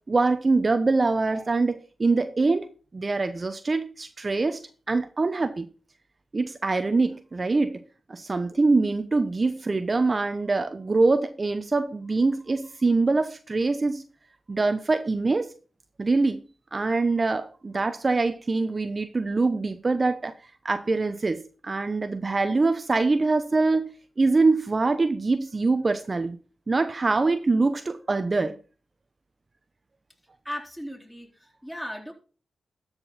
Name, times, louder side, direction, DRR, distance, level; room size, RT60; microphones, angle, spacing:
voice 1, 0.1-4.6 4.9-5.7 6.3-7.8 8.1-14.0 14.5-15.5 16.0-16.4 16.7-20.3 20.6-26.4 26.7-28.5, right 3 dB, 45° right, 0.8 m, -24 dB
voice 2, 30.4-32.1, equal, 5° left, 3.7 m, -37 dB
13.0 x 5.3 x 4.1 m
supercardioid pair, 40°, 0 cm